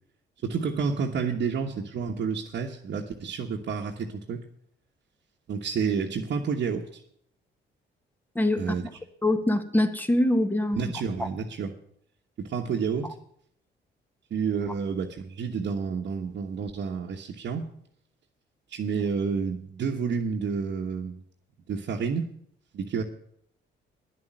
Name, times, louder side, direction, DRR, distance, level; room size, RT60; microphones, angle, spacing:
voice 1, 0.4-4.4 5.5-7.0 8.6-8.9 10.7-11.7 12.4-13.2 14.3-17.7 18.7-21.2 21.7-22.3 22.7-23.0, right 6 dB, 60° right, -1 dB, 1.3 m, -30 dB
voice 2, 8.3-8.7 9.2-10.9 11.2-11.3, left 1 dB, 10° left, 8 dB, 1.5 m, -24 dB
10.5 x 7.5 x 9.0 m, 0.67 s
cardioid pair, 90°, 20 cm